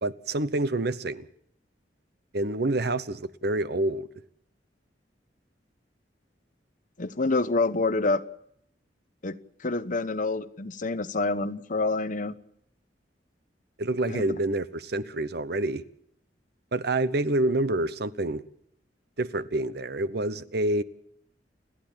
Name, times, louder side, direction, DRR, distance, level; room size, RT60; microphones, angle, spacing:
voice 1, 0.0-1.3 2.3-4.1 13.8-15.8 16.7-18.4 19.2-20.8, right 2 dB, 60° right, 16 dB, 0.9 m, -27 dB
voice 2, 7.0-8.2 9.2-9.4 9.6-12.4 14.1-14.4, left 3 dB, 45° left, 10 dB, 1.0 m, -27 dB
29.5 x 10.0 x 8.8 m, 0.71 s
head